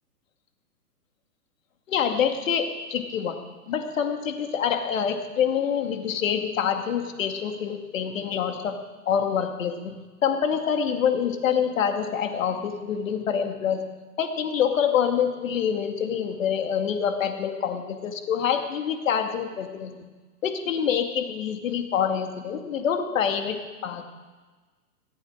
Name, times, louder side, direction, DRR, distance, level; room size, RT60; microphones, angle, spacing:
voice 1, 1.9-3.4 3.7-8.8 9.1-13.9 14.2-20.1 20.4-24.1, left 8 dB, 55° left, 5 dB, 2.3 m, -26 dB
17.5 x 15.0 x 5.0 m, 1.3 s
hypercardioid pair, 135°, 47 cm